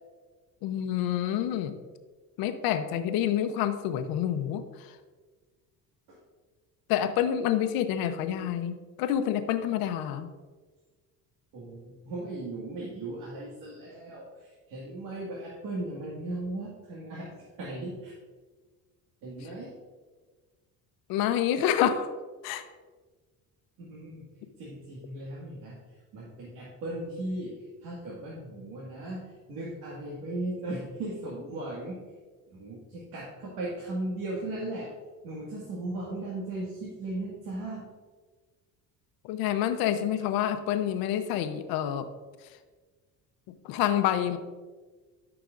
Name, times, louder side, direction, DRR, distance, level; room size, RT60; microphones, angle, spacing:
voice 1, 0.6-1.7 2.4-4.6 6.9-10.3 21.1-22.1 22.4-22.6 39.2-42.0 43.6-44.4, left 10 dB, 85° left, 9 dB, 0.8 m, -27 dB
voice 2, 11.5-18.2 19.2-19.7 23.8-24.2 24.6-25.7 26.1-29.2 29.5-32.0 32.5-34.9 35.2-37.8, right 2 dB, 80° right, -5 dB, 2.0 m, -37 dB
12.5 x 6.0 x 2.5 m, 1.4 s
cardioid pair, 110°, 35 cm